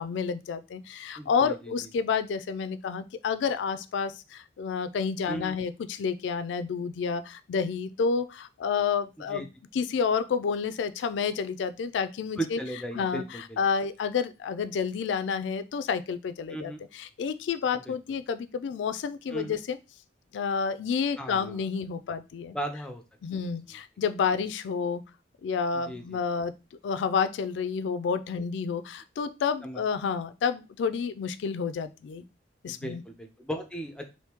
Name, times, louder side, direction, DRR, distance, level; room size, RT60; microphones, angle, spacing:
voice 1, 0.0-9.5 9.7-12.6 12.9-19.8 20.3-22.5 23.2-25.0 25.4-26.5 26.8-32.2 32.6-33.0, left 6 dB, 75° left, 13 dB, 0.3 m, -30 dB
voice 2, 1.2-1.7 5.3-5.5 9.3-9.5 12.4-13.6 16.5-16.8 17.7-17.9 19.3-19.6 21.2-21.6 22.5-23.0 25.9-26.2 29.6-29.8 32.7-34.1, right 1 dB, 5° left, 4 dB, 0.4 m, -36 dB
3.5 x 2.6 x 2.8 m, 0.28 s
head